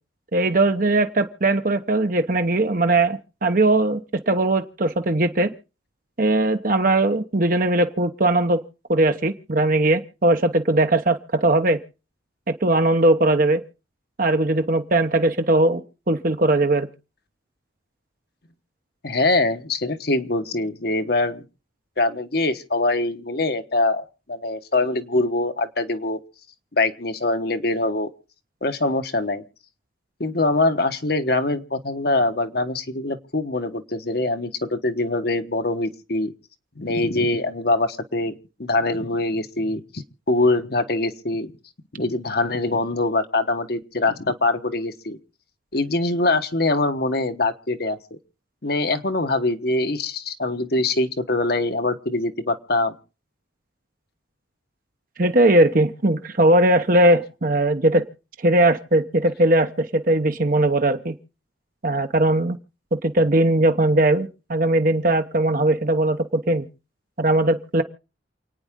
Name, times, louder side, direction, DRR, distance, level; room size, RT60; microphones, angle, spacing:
voice 1, 0.3-5.5 6.2-8.6 8.9-11.8 12.5-13.6 14.2-15.8 16.1-16.9 55.2-58.0 58.4-61.1 61.8-62.6 63.0-66.6 67.2-67.8, right 2 dB, 45° right, 7 dB, 1.0 m, -19 dB
voice 2, 19.0-21.4 22.0-26.2 26.7-28.1 28.6-29.4 30.2-36.3 36.8-41.5 41.9-45.2 45.7-48.2 48.6-53.0, left 2 dB, 55° left, 8 dB, 1.3 m, -23 dB
28.5 x 9.6 x 3.7 m, 0.34 s
head